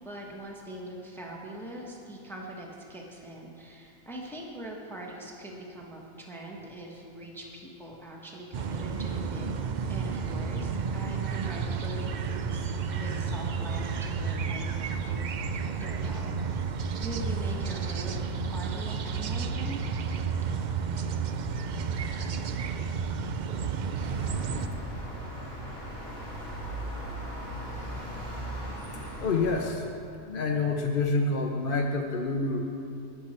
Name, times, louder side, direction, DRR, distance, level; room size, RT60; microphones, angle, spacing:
voice 1, 0.0-9.5 9.9-15.2 15.5-16.7 17.0-18.2 18.5-19.8, right 1 dB, ahead, -2 dB, 1.2 m, -42 dB
sound 1, 8.5-24.7, right 5 dB, 75° right, 0.4 m, -31 dB
sound 2, 24.0-29.7, right 1 dB, 50° right, 3.0 m, -38 dB
voice 2, 28.7-29.8 30.3-32.6, left 3 dB, 50° left, 2 dB, 0.7 m, -28 dB
18.5 x 6.9 x 4.3 m, 2.5 s
omnidirectional pair, 1.4 m